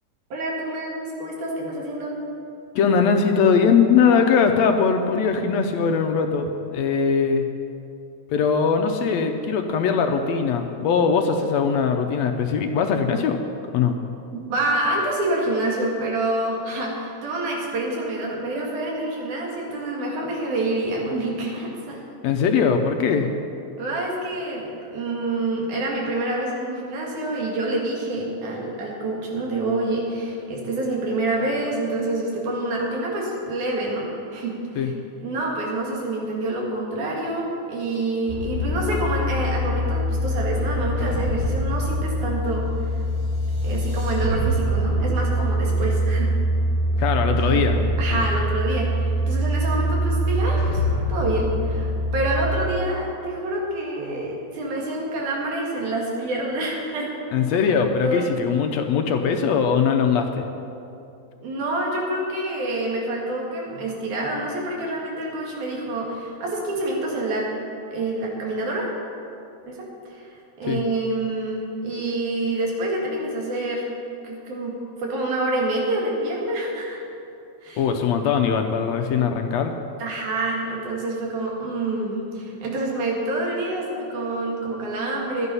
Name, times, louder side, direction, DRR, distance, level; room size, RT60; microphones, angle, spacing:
voice 1, 0.3-2.2 14.3-22.0 23.8-34.9 35.2-43.0 43.6-46.3 47.3-50.8 51.1-57.1 58.0-58.6 61.4-67.5 67.9-68.9 69.7-73.8 74.2-77.0 77.6-77.9 80.0-85.5, right 2 dB, 80° right, -2 dB, 3.4 m, -27 dB
voice 2, 2.8-7.4 8.3-13.4 13.7-13.9 22.2-23.3 34.8-34.9 47.0-47.8 48.1-48.3 57.3-60.5 70.7-70.8 77.8-79.7, left 6 dB, 75° left, 5 dB, 1.7 m, -21 dB
sound 1, 38.3-52.5, equal, 65° right, 4.4 m, -24 dB
12.0 x 9.7 x 5.6 m, 2.7 s
omnidirectional pair, 3.4 m